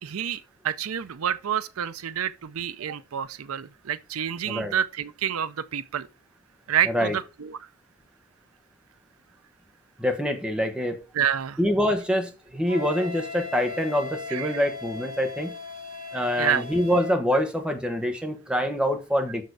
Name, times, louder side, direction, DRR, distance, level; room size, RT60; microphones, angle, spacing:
voice 1, 0.0-6.1 6.7-7.6 11.1-11.6 14.3-14.5 16.4-16.6, right 9 dB, 85° right, 0.5 m, -28 dB
voice 2, 10.0-11.0 11.6-15.5 16.1-19.4, equal, 5° right, 1.3 m, -25 dB
Wind instrument woodwind instrument, 12.7-17.2, left 4 dB, 65° right, 3.2 m, -38 dB
6.6 x 6.5 x 4.7 m
head